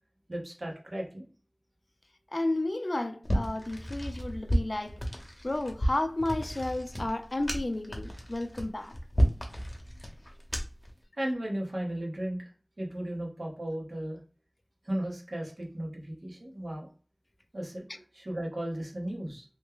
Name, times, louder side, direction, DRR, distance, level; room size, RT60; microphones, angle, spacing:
voice 1, 0.3-1.2 11.2-12.4 12.8-14.2 14.8-16.9 17.5-19.4, right 1 dB, 75° right, 1.1 m, -35 dB
voice 2, 2.3-5.0 5.4-9.0, left 2 dB, 55° left, 0.3 m, -32 dB
sound 1, 3.2-10.9, equal, 35° left, 0.8 m, -32 dB
3.0 x 2.2 x 3.6 m
wide cardioid pair, 45°, 0 cm